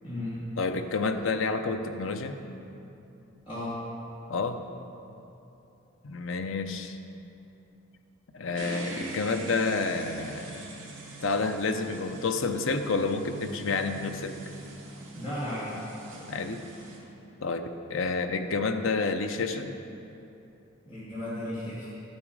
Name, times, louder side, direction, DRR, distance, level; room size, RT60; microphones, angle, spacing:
voice 1, 0.0-0.4 3.5-3.8 15.1-15.8 20.8-21.9, left 1 dB, 25° left, -13 dB, 2.6 m, -35 dB
voice 2, 0.6-2.4 4.3-4.6 6.0-7.0 8.3-10.6 11.2-14.4 16.3-16.6 17.4-19.7, left 3 dB, 70° left, 7 dB, 0.7 m, -29 dB
sound 1, 8.5-17.0, right 2 dB, 70° right, 2.5 m, -43 dB
12.5 x 7.4 x 4.8 m, 2.9 s
head